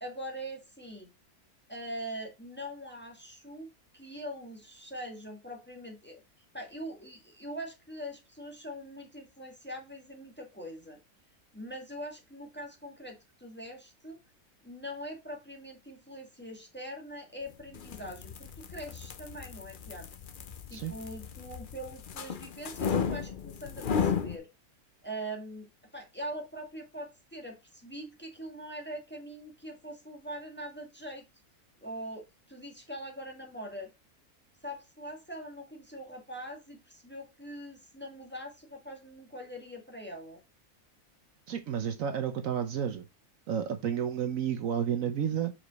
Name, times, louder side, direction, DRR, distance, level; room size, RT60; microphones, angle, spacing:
voice 1, 0.0-1.1 1.7-3.7 3.9-6.2 6.5-11.0 11.5-14.2 14.6-20.1 20.7-24.5 25.0-25.7 25.9-31.3 31.8-33.9 34.6-40.4, equal, 5° left, 1.6 m, -42 dB
sound 1, 17.6-24.4, left 6 dB, 50° left, 0.6 m, -34 dB
voice 2, 41.5-43.0 43.5-45.5, right 8 dB, 65° right, 1.1 m, -31 dB
5.9 x 4.9 x 4.0 m
omnidirectional pair, 1.6 m